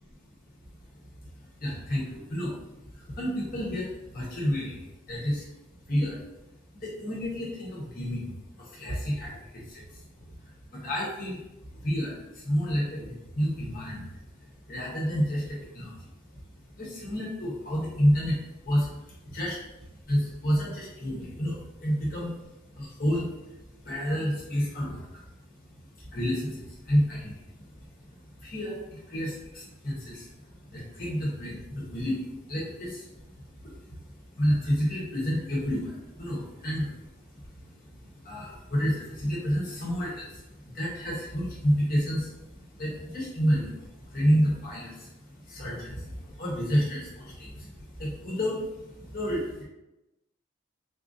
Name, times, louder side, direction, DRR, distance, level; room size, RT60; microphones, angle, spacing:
voice 1, 1.6-2.6 2.9-5.5 5.9-6.2 6.7-10.0 10.7-11.4 11.7-14.1 14.4-16.0 16.3-16.4 16.7-18.4 18.6-19.6 20.0-22.3 22.7-23.3 23.8-25.1 26.0-27.3 27.7-33.3 33.6-34.0 34.3-36.9 37.3-37.6 38.0-49.6, equal, 45° left, -5 dB, 0.9 m, -30 dB
4.2 x 2.5 x 2.6 m, 0.97 s
head